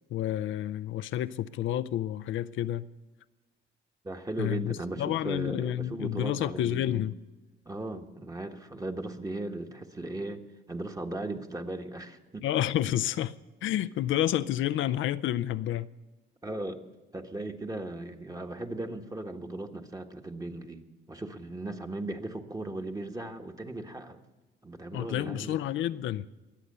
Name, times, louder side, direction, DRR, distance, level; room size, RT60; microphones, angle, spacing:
voice 1, 0.1-2.9 4.4-7.1 12.4-13.4 13.6-15.9 24.9-26.3, left 12 dB, 75° left, 0.5 m, -30 dB
voice 2, 4.0-7.1 7.6-10.4 10.7-12.4 16.4-16.8 17.1-24.2 24.6-25.6, right 2 dB, 15° right, 1.4 m, -37 dB
22.5 x 8.3 x 6.7 m
cardioid pair, 90°, 20 cm